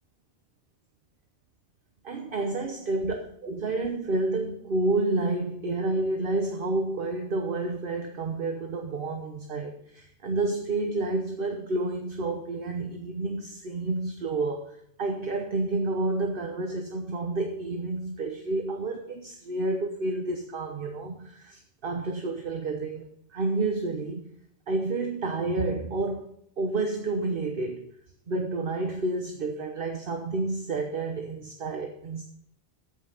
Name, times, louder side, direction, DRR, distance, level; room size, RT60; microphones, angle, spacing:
voice 1, 2.0-24.3 24.7-27.9 28.3-32.2, right 2 dB, 55° right, 1.2 m, -30 dB
14.0 x 5.6 x 5.5 m
omnidirectional pair, 1.1 m